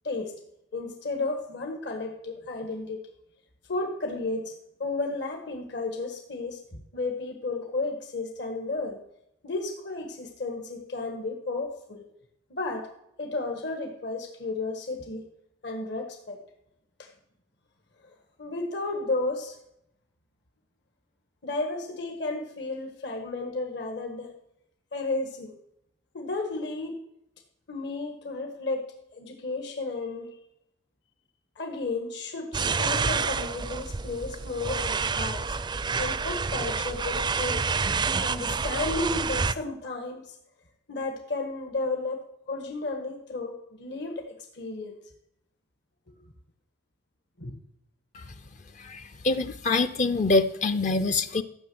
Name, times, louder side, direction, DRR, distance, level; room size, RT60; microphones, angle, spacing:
voice 1, 0.0-0.3 0.7-3.0 3.7-4.5 4.8-9.0 9.4-12.1 12.5-12.9 13.2-15.2 15.6-16.4 17.0-17.1 18.4-19.6 21.4-24.3 24.9-25.5 26.1-27.0 27.7-28.8 29.1-30.3 31.5-35.6 36.0-37.6 38.2-40.4 40.9-45.0 47.4-47.6, left 3 dB, 65° left, 3 dB, 1.5 m, -33 dB
sound 1, 32.5-39.5, right 5 dB, 25° right, 0.4 m, -28 dB
voice 2, 48.8-51.4, left 3 dB, 40° left, 10 dB, 0.5 m, -25 dB
14.0 x 6.2 x 7.7 m, 0.79 s
head